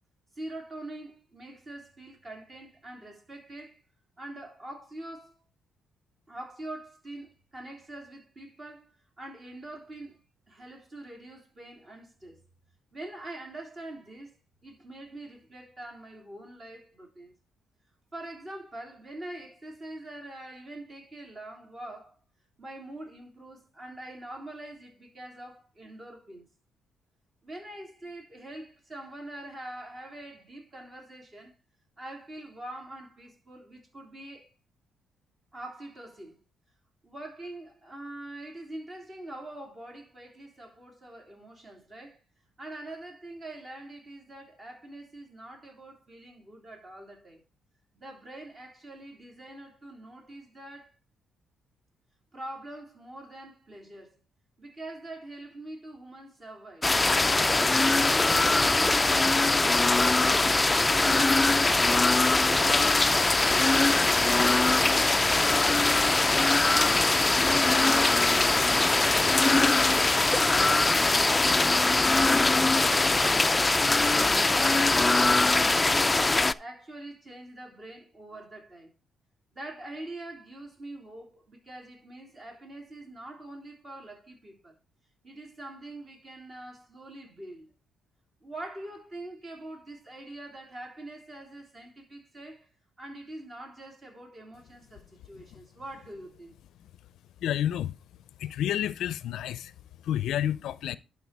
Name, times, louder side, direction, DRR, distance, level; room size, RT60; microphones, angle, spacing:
voice 1, 0.4-3.8 4.2-5.4 6.3-10.2 10.5-12.4 12.9-14.4 14.6-17.3 18.1-22.1 22.6-26.5 27.4-31.5 32.0-34.5 35.5-36.4 37.0-42.2 42.6-47.4 47.9-50.9 52.3-54.1 54.6-56.9 57.5-60.6 61.0-63.9 68.6-69.6 75.8-78.9 79.5-84.7 85.2-87.7 88.4-92.7 93.0-96.6, right 1 dB, 35° right, 3.5 m, -44 dB
sound 1, 56.8-76.5, left 2 dB, 20° left, 0.4 m, -22 dB
voice 2, 97.4-97.9 98.4-99.7 100.1-101.0, left 11 dB, 80° left, 0.5 m, -29 dB
11.5 x 4.6 x 4.7 m
cardioid pair, 90°, 0 cm